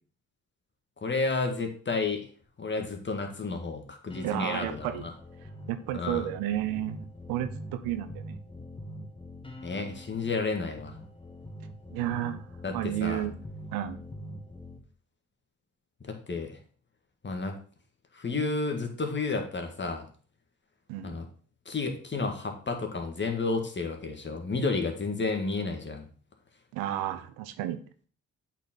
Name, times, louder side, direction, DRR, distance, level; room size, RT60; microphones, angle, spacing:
voice 1, 1.0-2.3 2.6-5.1 5.9-6.3 9.6-11.0 12.6-13.2 16.1-16.6 17.2-17.6 18.1-20.0 21.0-21.3 21.7-26.1, left 3 dB, 30° left, 4 dB, 1.8 m, -31 dB
sound 1, 4.1-14.8, equal, 15° left, 1.5 m, -44 dB
voice 2, 4.2-5.1 5.7-7.0 7.3-8.4 11.9-13.4 13.7-14.0 20.9-21.1 26.7-27.8, right 13 dB, 75° right, 11 dB, 0.8 m, -32 dB
8.1 x 4.5 x 3.8 m, 0.43 s
hypercardioid pair, 45°, 36 cm